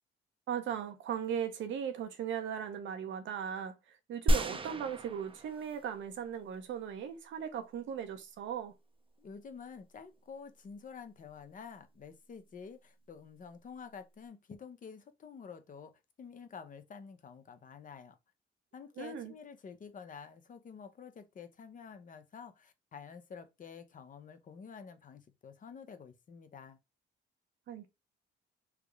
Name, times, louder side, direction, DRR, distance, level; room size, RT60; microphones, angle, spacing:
voice 1, 0.5-8.7 19.0-19.3 27.7-27.9, right 8 dB, 75° right, 0.7 m, -38 dB
sound 1, 4.3-6.0 6.5-6.6, right 1 dB, 25° right, 0.6 m, -31 dB
voice 2, 9.2-15.9 16.2-18.2 18.7-26.8, left 6 dB, 40° left, 0.6 m, -49 dB
3.4 x 2.0 x 3.4 m
cardioid pair, 90°, 20 cm